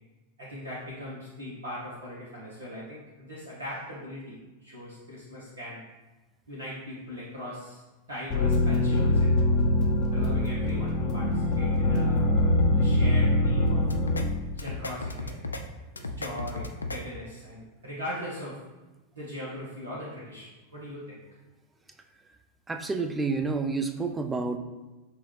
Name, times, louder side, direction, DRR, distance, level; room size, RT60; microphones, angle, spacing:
voice 1, 0.4-5.8 6.5-7.8 8.1-9.5 10.1-13.9 14.5-15.6 15.9-18.6 19.1-21.2, left 1 dB, 70° right, -7 dB, 0.9 m, -40 dB
sound 1, 8.3-14.2, left 1 dB, 35° left, 0.7 m, -23 dB
sound 2, 13.8-14.2 14.6-15.6 16.0-17.0, left 2 dB, 80° left, 0.3 m, -34 dB
voice 2, 22.7-24.6, right 4 dB, 10° right, 5 dB, 0.4 m, -29 dB
5.7 x 2.3 x 3.2 m, 1.1 s
figure-of-eight pair, 90°, 0 cm